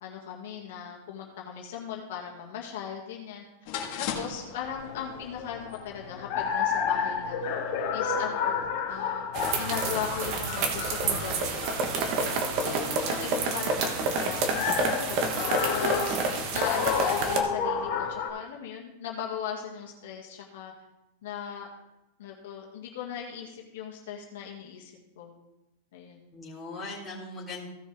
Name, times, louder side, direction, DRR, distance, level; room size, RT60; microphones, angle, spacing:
voice 1, 0.0-3.4 4.0-7.4 7.9-9.2 9.6-11.6 12.2-15.3 15.7-16.2 16.5-20.7 21.2-21.7 22.2-25.3 25.9-26.2, left 8 dB, 60° left, -1 dB, 1.9 m, -38 dB
sound 1, 3.7-18.3, left 6 dB, 40° left, 1.6 m, -32 dB
sound 2, 9.3-17.4, right 3 dB, 35° right, 1.1 m, -29 dB
voice 2, 12.5-13.4 26.3-27.7, left 2 dB, 5° left, -9 dB, 3.2 m, -40 dB
16.0 x 6.5 x 3.4 m, 0.95 s
supercardioid pair, 170°, 0 cm